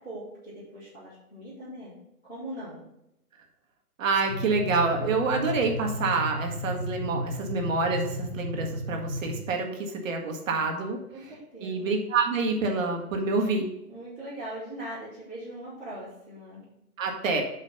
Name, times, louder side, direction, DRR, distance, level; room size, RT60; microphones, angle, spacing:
voice 1, 0.0-1.9 2.3-2.8 9.5-9.6 11.1-12.0 13.9-16.6, right 1 dB, 5° left, -20 dB, 0.4 m, -40 dB
voice 2, 4.0-11.0 11.6-13.7 17.0-17.4, right 3 dB, 60° right, 2 dB, 1.6 m, -27 dB
sound 1, 4.3-9.4, equal, 25° left, 0.9 m, -34 dB
7.7 x 3.2 x 5.5 m, 0.83 s
hypercardioid pair, 135°, 45 cm